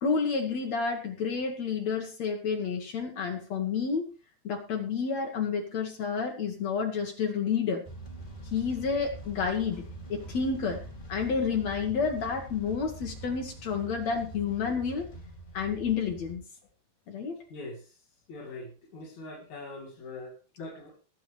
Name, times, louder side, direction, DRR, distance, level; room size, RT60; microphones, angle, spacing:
voice 1, 0.0-4.1 4.4-7.8 8.5-9.8 10.1-10.8 11.1-15.1 15.5-16.4 17.1-17.4, left 5 dB, 65° left, 3 dB, 1.8 m, -30 dB
sound 1, 7.8-16.4, right 1 dB, 20° left, 1.6 m, -44 dB
voice 2, 17.5-21.0, left 2 dB, 45° left, -2 dB, 3.2 m, -43 dB
21.5 x 7.9 x 3.3 m, 0.35 s
omnidirectional pair, 5.2 m